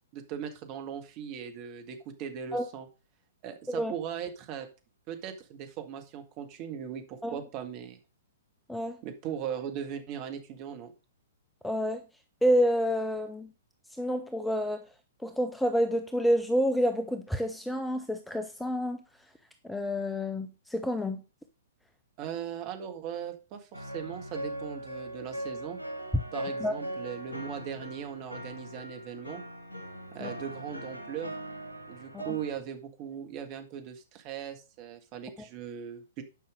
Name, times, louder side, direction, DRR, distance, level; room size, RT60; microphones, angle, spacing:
voice 1, 0.1-2.9 3.4-4.7 5.1-8.0 9.0-10.9 22.2-25.8 26.3-29.4 30.1-31.3 31.9-36.2, right 8 dB, 35° right, 5 dB, 1.8 m, -39 dB
voice 2, 11.6-12.0 12.4-13.5 14.0-14.9 15.2-19.0 19.6-21.2 26.6-26.7 30.2-30.3 32.1-32.3, equal, 5° left, 8 dB, 0.7 m, -28 dB
sound 1, 23.7-32.6, right 1 dB, 80° left, 1.9 m, -40 dB
9.6 x 5.6 x 5.1 m, 0.32 s
figure-of-eight pair, 115°, 0 cm